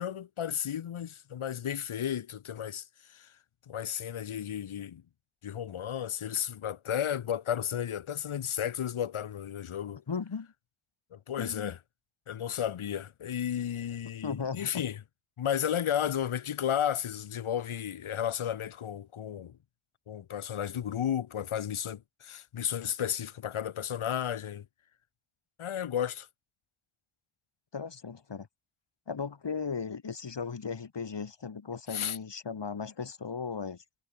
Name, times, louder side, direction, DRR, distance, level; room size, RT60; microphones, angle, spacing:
voice 1, 0.0-3.3 3.7-5.0 5.4-10.0 11.1-11.8 12.3-15.0 15.4-19.6 20.1-24.6 25.6-26.3 31.9-32.2, left 9 dB, 85° left, 3.4 m, -33 dB
voice 2, 10.1-10.5 11.4-11.7 14.2-14.8 27.7-28.5 29.1-33.8, left 5 dB, 60° left, 6.8 m, -36 dB
cardioid pair, 45°, 48 cm